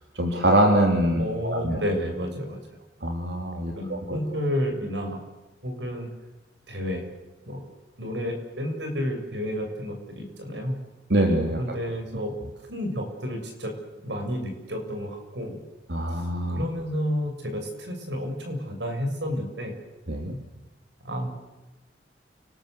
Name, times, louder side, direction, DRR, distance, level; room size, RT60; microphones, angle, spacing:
voice 1, 0.2-1.8 3.0-4.2 11.1-11.6 15.9-16.6 20.1-20.4, right 1 dB, 70° right, 2 dB, 3.3 m, -24 dB
voice 2, 1.2-2.8 3.7-5.2 5.6-6.1 6.7-7.1 7.5-7.6 8.0-10.8 11.6-12.3 12.7-13.7 14.0-15.6 16.1-16.2 16.5-19.7 21.0-21.3, equal, 90° right, 3 dB, 6.8 m, -31 dB
29.0 x 20.0 x 8.0 m, 1.1 s
head